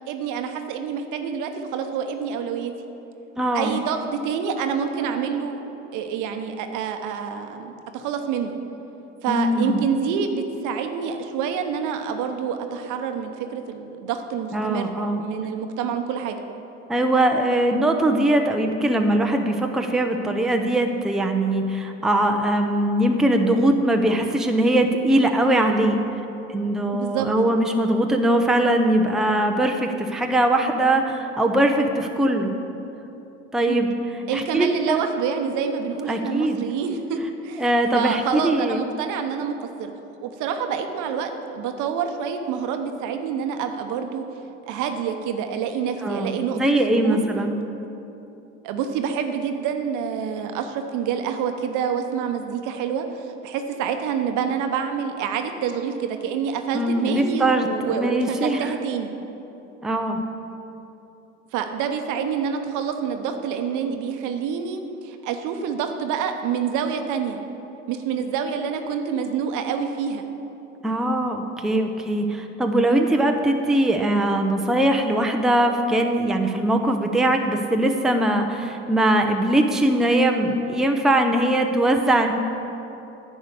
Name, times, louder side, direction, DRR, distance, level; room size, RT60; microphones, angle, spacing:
voice 1, 0.0-2.7 3.5-5.6 5.9-8.6 9.2-16.4 26.9-27.3 33.7-33.8 34.3-37.2 37.4-37.6 37.9-39.9 40.2-44.2 44.7-46.6 47.0-47.2 48.6-59.1 61.5-67.4 67.9-70.2, right 7 dB, 55° right, 6 dB, 1.0 m, -27 dB
voice 2, 3.4-3.8 9.3-9.8 14.5-15.2 16.9-26.0 26.5-32.5 33.5-33.9 34.3-35.0 36.1-36.6 37.6-38.8 46.0-47.5 56.7-58.7 59.8-60.2 70.8-82.3, right 1 dB, ahead, 3 dB, 0.7 m, -21 dB
10.5 x 4.9 x 8.2 m, 2.9 s
hypercardioid pair, 75°, 36 cm